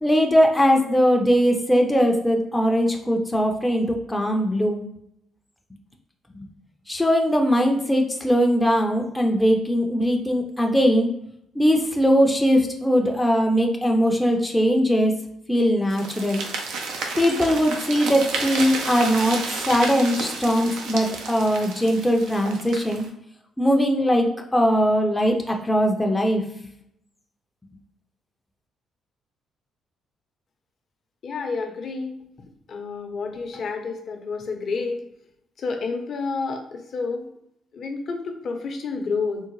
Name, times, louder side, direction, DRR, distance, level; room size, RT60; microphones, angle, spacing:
voice 1, 0.0-4.9 6.3-6.5 6.9-11.1 11.6-15.1 15.5-16.4 17.2-23.0 23.6-26.4, equal, 10° left, 1 dB, 0.5 m, -20 dB
sound 1, 15.9-23.1, right 4 dB, 90° right, 0.5 m, -31 dB
voice 2, 31.2-32.2 32.7-35.0 35.6-37.3 37.7-39.4, left 4 dB, 55° left, 4 dB, 0.6 m, -29 dB
3.6 x 2.0 x 3.0 m, 0.77 s
cardioid pair, 90°, 0 cm